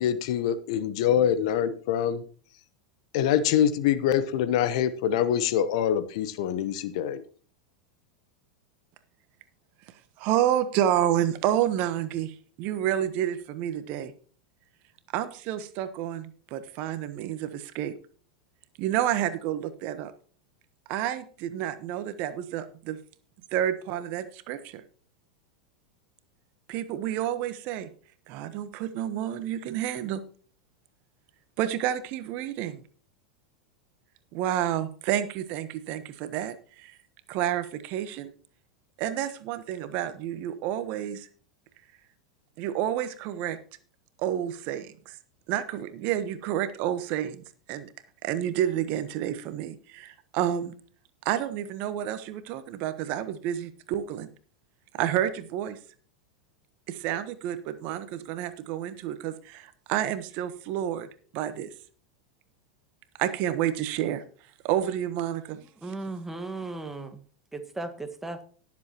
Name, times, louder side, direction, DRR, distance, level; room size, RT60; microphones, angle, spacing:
voice 1, 0.0-2.2 3.1-7.2, left 9 dB, 60° left, 13 dB, 1.0 m, -25 dB
voice 2, 10.2-14.1 15.1-17.9 18.8-20.1 20.9-23.0 23.5-24.8 26.7-27.9 28.3-30.2 31.6-32.8 34.3-37.0 37.3-38.3 39.0-41.3 42.6-43.6 44.2-45.2 45.5-47.9 48.2-50.7 51.2-54.3 54.9-55.8 56.9-61.7 63.2-64.2 64.6-65.6, right 11 dB, 50° right, 12 dB, 1.1 m, -29 dB
voice 3, 65.8-67.2 67.5-68.4, right 2 dB, 10° right, 6 dB, 1.6 m, -36 dB
18.5 x 7.4 x 3.0 m, 0.42 s
hypercardioid pair, 90°, 3 cm